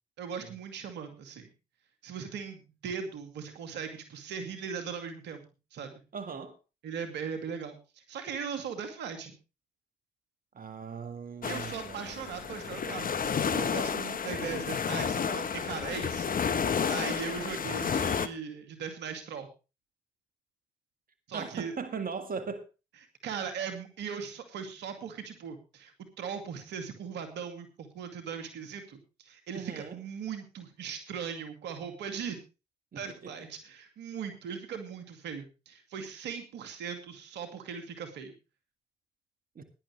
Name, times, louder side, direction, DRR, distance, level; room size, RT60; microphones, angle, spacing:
voice 1, 0.2-1.5 2.0-5.4 5.7-6.0 6.8-9.3 11.4-16.3 16.6-19.5 21.3-21.7 23.2-32.4 33.0-38.3, right 6 dB, 80° right, 2.2 m, -39 dB
voice 2, 6.1-6.6 10.5-12.4 14.3-14.7 21.3-22.7 29.5-30.0 32.9-33.3 39.6-39.7, right 5 dB, 55° right, 1.9 m, -39 dB
sound 1, 11.4-18.3, left 6 dB, 55° left, 1.2 m, -31 dB
17.0 x 10.5 x 3.3 m
supercardioid pair, 45°, 18 cm